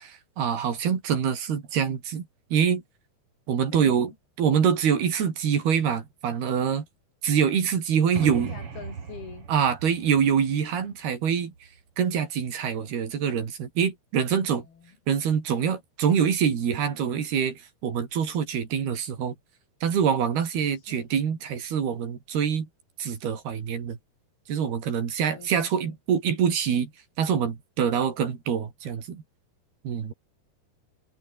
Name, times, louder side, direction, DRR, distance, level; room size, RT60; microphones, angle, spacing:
voice 1, 0.0-2.8 3.5-4.1 4.4-6.9 7.2-8.5 9.5-11.5 12.0-14.6 15.1-19.4 19.8-22.7 23.0-24.0 24.5-26.9 27.2-29.2 29.9-30.1, right 7 dB, 75° right, 5.4 m, -25 dB
voice 2, 3.7-4.1 8.2-9.5 14.3-15.0 20.9-21.1 25.3-26.0, left 6 dB, 70° left, 6.3 m, -44 dB
sound 1, 8.1-11.8, right 5 dB, 40° right, 3.5 m, -39 dB
omnidirectional pair, 4.6 m